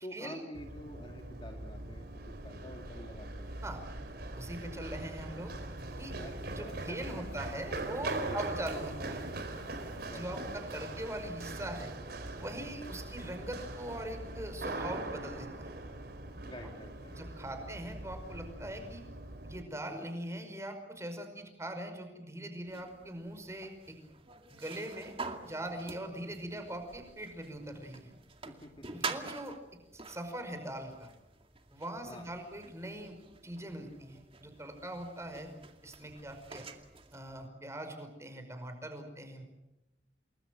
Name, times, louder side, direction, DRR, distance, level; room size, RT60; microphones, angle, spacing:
voice 1, 0.0-3.5 6.2-7.0 8.2-8.4 10.1-10.3 16.4-17.2 28.5-29.2 32.1-32.3, left 1 dB, 30° left, 2 dB, 2.4 m, -48 dB
Run, 0.5-19.6, right 2 dB, 60° right, 4.3 m, -41 dB
voice 2, 4.4-5.5 6.0-6.1 6.6-9.2 10.1-11.9 12.3-15.7 17.1-19.0 19.4-24.0 24.5-25.1 25.4-28.1 28.9-29.6 30.1-31.1 31.7-33.2 33.4-35.5 35.8-36.6 37.1-39.4, right 1 dB, 15° right, 7 dB, 5.3 m, -41 dB
sound 1, 22.7-37.5, right 4 dB, 30° right, 2.2 m, -47 dB
29.0 x 21.0 x 7.7 m, 0.94 s
head